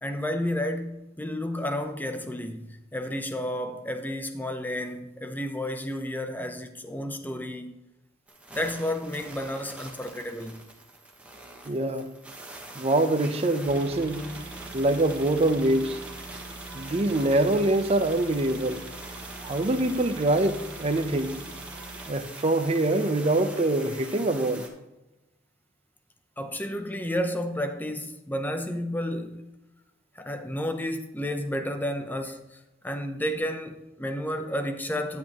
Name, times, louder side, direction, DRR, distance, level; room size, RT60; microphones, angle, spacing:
voice 1, 0.0-7.8 8.5-10.6 16.7-16.8 26.4-29.5 30.1-32.6 32.8-35.2, left 1 dB, 10° left, 0.7 m, -31 dB
sound 1, 8.3-24.7, right 2 dB, 5° right, 1.2 m, -43 dB
voice 2, 11.6-12.1 12.7-14.3 14.7-16.0 16.7-18.8 19.4-21.3 22.1-24.7, right 2 dB, 30° right, 0.6 m, -24 dB
sound 2, 13.7-22.1, right 3 dB, 60° right, 2.0 m, -44 dB
9.8 x 8.5 x 3.0 m
head